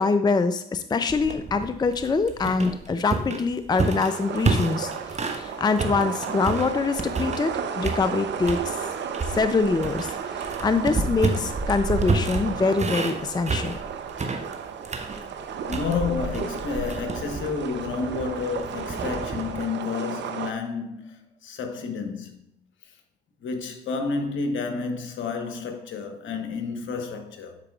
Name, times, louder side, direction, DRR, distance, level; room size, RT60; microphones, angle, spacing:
voice 1, 0.0-8.8 9.3-10.1 10.4-13.8, left 4 dB, 20° left, 0.5 m, -24 dB
sound 1, 1.1-5.5 5.8-7.5 7.8-8.7 9.1-19.6, right 3 dB, 35° right, 1.1 m, -30 dB
sound 2, 3.7-20.5, right 7 dB, 60° right, 0.7 m, -34 dB
voice 2, 15.7-22.4 23.4-27.6, left 4 dB, 65° left, 1.1 m, -30 dB
12.5 x 4.7 x 2.4 m
hypercardioid pair, 45°, 21 cm